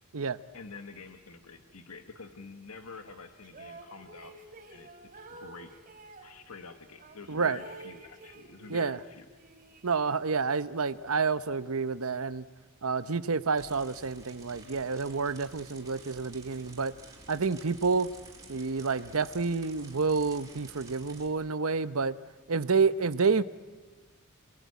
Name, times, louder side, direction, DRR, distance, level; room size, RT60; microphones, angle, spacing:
voice 1, 0.5-5.7 6.2-9.2, left 4 dB, 85° left, 7 dB, 1.5 m, -47 dB
sound 1, 3.4-6.3 7.0-9.0 9.3-10.4, right 3 dB, 40° right, 3.3 m, -50 dB
voice 2, 7.3-7.6 8.7-9.0 9.8-12.5 12.8-16.9 17.3-18.1 18.5-22.2 22.5-23.4, right 4 dB, 70° right, 14 dB, 0.9 m, -29 dB
sound 2, 13.6-21.3, right 3 dB, 15° right, 4.3 m, -51 dB
28.5 x 21.0 x 9.6 m, 1.3 s
head